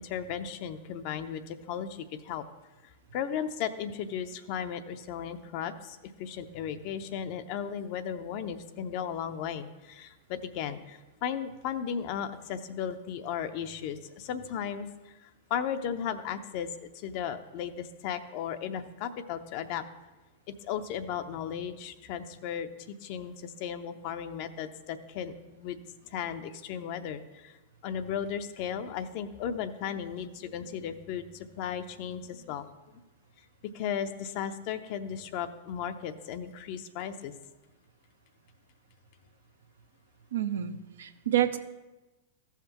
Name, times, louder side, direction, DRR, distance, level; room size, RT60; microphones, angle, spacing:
voice 1, 0.0-2.4 2.8-19.8 20.5-27.6 27.8-33.0 33.6-37.3, left 8 dB, 50° left, 10 dB, 0.6 m, -36 dB
voice 2, 40.3-41.6, right 11 dB, 75° right, 7 dB, 0.6 m, -28 dB
14.5 x 5.8 x 3.0 m, 1.1 s
hypercardioid pair, 95°, 0 cm